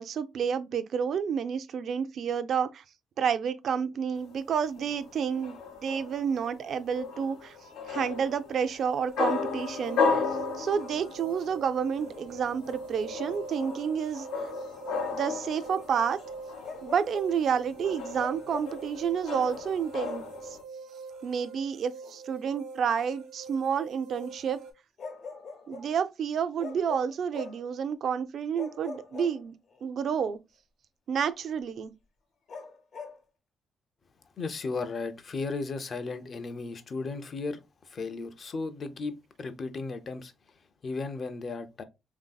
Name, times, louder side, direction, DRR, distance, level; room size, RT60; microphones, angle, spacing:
voice 1, 0.0-2.8 3.2-7.6 7.9-10.2 10.6-14.5 15.1-16.2 16.8-20.6 21.2-24.6 25.7-29.5 29.8-30.4 31.1-31.9, right 7 dB, 65° right, 0.3 m, -30 dB
sound 1, 4.2-20.6, left 4 dB, 90° left, 0.6 m, -35 dB
sound 2, 9.1-24.7, right 4 dB, 90° right, 0.9 m, -45 dB
Bark, 16.6-17.4 18.1-18.8 20.0-20.4 22.0-22.2 25.0-25.9 26.6-27.7 28.5-29.8 32.5-33.2, left 4 dB, 65° left, 0.9 m, -42 dB
voice 2, 34.4-40.3 40.8-41.8, left 3 dB, 45° left, 0.5 m, -35 dB
3.2 x 2.6 x 2.2 m
cardioid pair, 90°, 0 cm